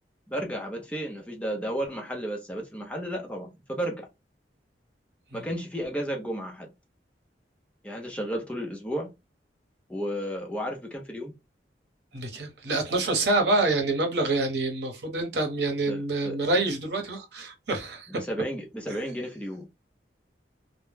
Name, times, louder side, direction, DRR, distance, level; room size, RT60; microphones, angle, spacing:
voice 1, 0.3-4.1 5.3-6.7 7.8-9.1 9.9-11.3 15.9-16.4 18.2-19.6, equal, 5° left, 0.5 m, -33 dB
voice 2, 12.1-18.2, right 2 dB, 70° right, 0.8 m, -27 dB
2.1 x 2.0 x 3.1 m
head